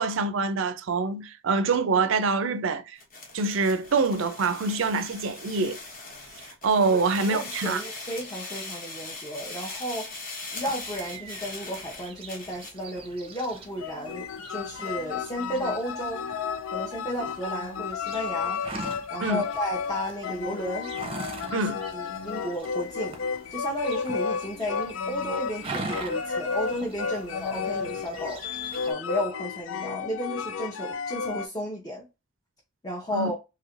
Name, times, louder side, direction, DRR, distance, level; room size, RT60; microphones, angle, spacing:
voice 1, 0.0-3.0 3.3-5.8 6.6-7.8 19.2-19.4 21.5-21.8 33.1-33.3, right 4 dB, 70° right, 0.4 m, -25 dB
sound 1, 3.0-12.8, left 3 dB, 45° left, 1.1 m, -40 dB
voice 2, 7.3-10.1 10.5-16.3 16.7-18.6 19.1-20.9 21.9-23.2 23.5-28.4 28.9-32.1 32.8-33.4, equal, 20° left, 0.7 m, -33 dB
sound 2, 10.6-28.9, right 2 dB, 30° right, 0.6 m, -43 dB
sound 3, 13.8-31.5, left 6 dB, 75° left, 0.4 m, -33 dB
3.1 x 2.8 x 2.4 m
head